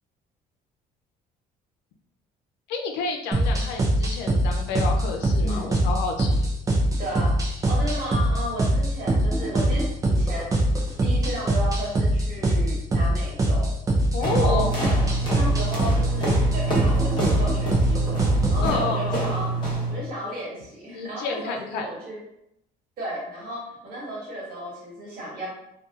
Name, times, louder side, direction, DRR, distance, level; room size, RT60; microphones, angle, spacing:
voice 1, 2.7-6.5 14.1-14.7 18.6-19.2 20.9-21.9, left 4 dB, 90° left, 3 dB, 0.4 m, -29 dB
sound 1, 3.3-18.7, right 1 dB, 20° right, 0.5 m, -23 dB
voice 2, 5.4-5.7 7.0-7.4 7.6-10.5 11.0-13.7 14.2-14.7 15.3-19.5 19.9-22.2 23.0-25.5, equal, 60° right, -5 dB, 1.3 m, -34 dB
sound 2, 14.2-20.0, right 3 dB, 25° left, 0.9 m, -26 dB
2.8 x 2.2 x 2.3 m, 0.80 s
cardioid pair, 110°, 17 cm